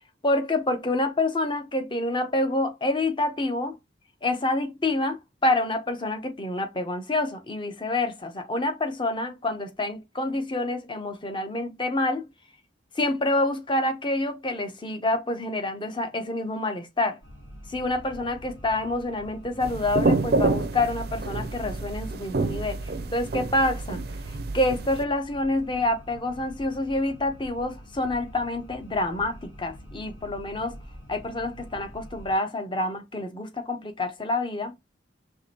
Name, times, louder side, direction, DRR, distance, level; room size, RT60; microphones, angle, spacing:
voice 1, 0.2-3.8 4.2-12.3 13.0-17.2 17.7-24.0 24.3-30.8 31.1-34.7, left 2 dB, 25° left, 0.9 m, -27 dB
sound 1, 17.2-32.3, equal, 80° left, 1.9 m, -46 dB
sound 2, 19.6-25.0, right 3 dB, 55° right, 0.5 m, -28 dB
4.8 x 3.4 x 2.9 m
head